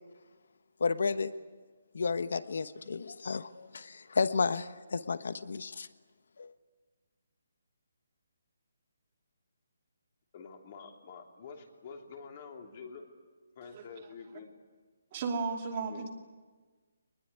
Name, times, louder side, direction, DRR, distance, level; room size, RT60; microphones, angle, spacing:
voice 1, 0.8-1.3 1.9-5.9 6.4-6.5, left 4 dB, 65° left, 13 dB, 1.1 m, -32 dB
voice 2, 10.3-13.0 13.5-14.5 15.9-16.1, left 5 dB, 30° left, 3 dB, 3.2 m, -47 dB
voice 3, 15.1-16.1, right 4 dB, 25° right, 2 dB, 2.8 m, -34 dB
24.0 x 21.0 x 9.7 m, 1.4 s
hypercardioid pair, 170°, 0 cm